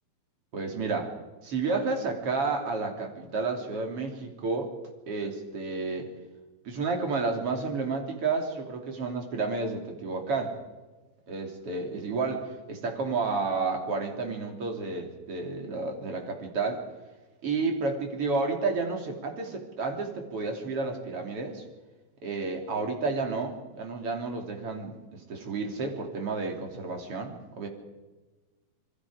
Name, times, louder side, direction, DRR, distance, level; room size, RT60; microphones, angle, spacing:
voice 1, 0.5-1.2 1.4-4.7 5.1-6.1 6.7-10.6 11.3-16.8 17.4-21.6 22.2-27.7, right 4 dB, 40° right, 3 dB, 3.6 m, -31 dB
28.0 x 22.0 x 5.0 m, 1.2 s
omnidirectional pair, 4.3 m